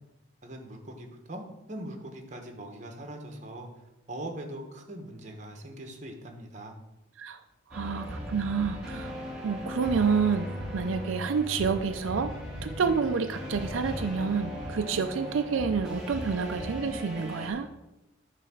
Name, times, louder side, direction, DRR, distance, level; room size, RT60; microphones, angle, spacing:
voice 1, 0.4-3.7 4.1-6.7, right 1 dB, 40° right, 3 dB, 1.1 m, -41 dB
sound 1, 7.7-17.5, equal, 5° right, 2.1 m, -38 dB
voice 2, 7.7-9.1 9.4-12.3 12.6-17.7, right 5 dB, 90° right, 8 dB, 0.4 m, -28 dB
9.1 x 3.4 x 6.3 m, 0.94 s
head